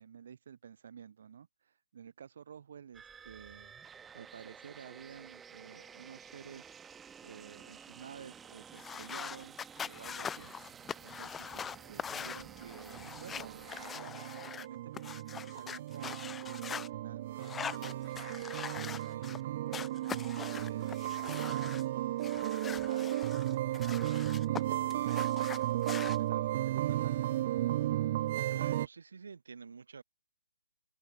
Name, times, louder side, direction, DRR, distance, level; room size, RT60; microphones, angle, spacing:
voice 1, 0.0-3.7 4.1-6.7 7.2-9.6 9.8-10.5 11.0-21.9 22.4-27.5, right 8 dB, 55° right, 3.1 m, -51 dB
sound 1, 2.9-14.0, right 7 dB, 10° right, 6.1 m, -52 dB
sound 2, 8.7-16.9 17.4-19.4 19.7-21.8 22.2-24.6 24.9-26.2, left 7 dB, 10° left, 1.8 m, -43 dB
sound 3, 11.9-28.9, right 14 dB, 35° right, 0.3 m, -34 dB
voice 2, 28.5-30.0, right 5 dB, 75° right, 4.2 m, -48 dB
open air
hypercardioid pair, 160°, 0 cm